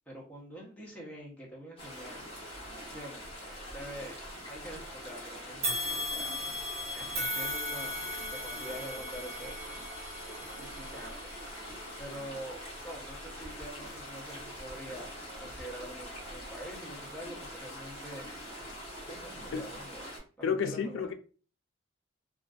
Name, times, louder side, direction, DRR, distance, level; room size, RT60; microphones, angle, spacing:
voice 1, 0.1-2.3 2.9-6.3 6.9-11.5 12.0-18.3 19.1-20.1 20.5-21.1, equal, 5° left, 0.7 m, -46 dB
sound 1, 1.8-20.2, equal, 30° left, 1.0 m, -44 dB
sound 2, 5.6-14.9 15.5-15.6 16.6-16.7, left 1 dB, 30° right, 0.7 m, -38 dB
voice 2, 20.4-21.1, left 6 dB, 80° left, 0.3 m, -30 dB
2.4 x 2.2 x 2.3 m
head